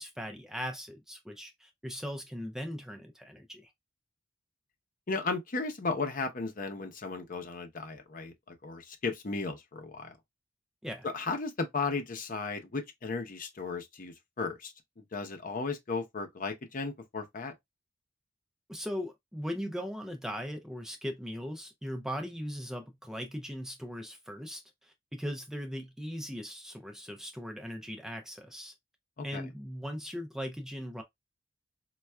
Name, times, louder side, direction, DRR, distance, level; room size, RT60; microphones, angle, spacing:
voice 1, 0.0-3.7 10.8-11.1 18.7-28.7 29.2-31.0, equal, 5° right, 0.4 m, -39 dB
voice 2, 5.1-10.2 11.1-17.5 29.2-29.4, left 4 dB, 45° left, 0.7 m, -35 dB
4.3 x 2.3 x 2.2 m
head